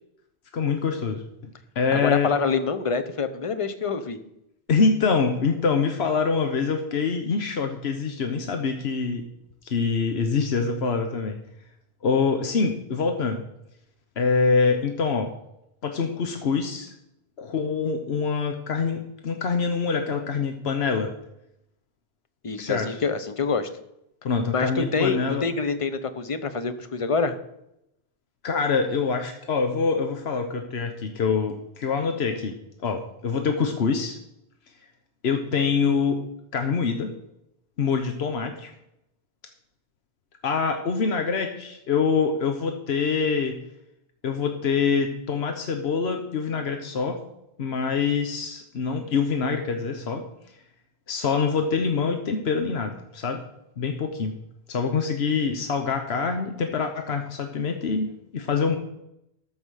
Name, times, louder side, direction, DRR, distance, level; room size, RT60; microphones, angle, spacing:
voice 1, 0.5-2.3 4.7-9.2 9.6-11.4 12.0-13.4 14.2-15.3 15.8-16.9 17.4-21.1 22.6-22.9 24.2-25.5 28.4-32.5 32.8-34.2 35.2-36.2 36.5-37.1 37.8-38.7 40.4-43.5 44.2-47.2 47.6-50.2 51.1-53.4 53.8-54.3 54.7-58.8, left 5 dB, 85° left, 5 dB, 1.2 m, -25 dB
voice 2, 1.9-4.2 22.4-23.7 24.5-27.4, left 4 dB, 35° left, 10 dB, 0.8 m, -26 dB
13.0 x 5.5 x 6.4 m, 0.82 s
omnidirectional pair, 1.0 m